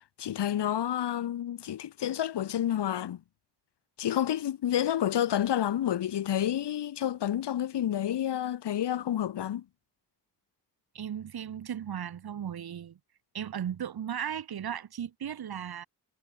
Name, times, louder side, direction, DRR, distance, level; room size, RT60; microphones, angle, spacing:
voice 1, 0.2-3.2 4.0-9.6, left 11 dB, 80° left, 2.5 m, -29 dB
voice 2, 10.9-13.0 13.3-15.9, right 9 dB, 65° right, 3.9 m, -36 dB
wide cardioid pair, 160°, 40 cm